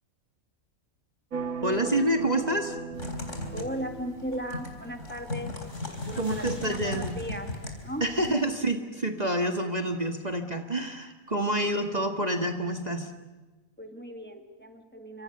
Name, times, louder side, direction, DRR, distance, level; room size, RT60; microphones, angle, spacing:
sound 1, 1.3-5.0, right 5 dB, 80° right, 2.0 m, -37 dB
voice 1, 1.6-2.8 6.2-7.1 8.0-13.1, right 1 dB, 30° right, 5 dB, 1.9 m, -28 dB
Typing, 2.9-8.3, left 2 dB, 60° left, 4.2 m, -37 dB
voice 2, 3.5-5.5 6.0-7.5 7.8-8.4 11.5-11.8 13.8-15.2, equal, 10° left, 5 dB, 2.1 m, -37 dB
sound 2, 5.4-8.4, equal, 25° left, 7.4 m, -54 dB
29.0 x 25.5 x 6.8 m, 1.2 s
omnidirectional pair, 1.4 m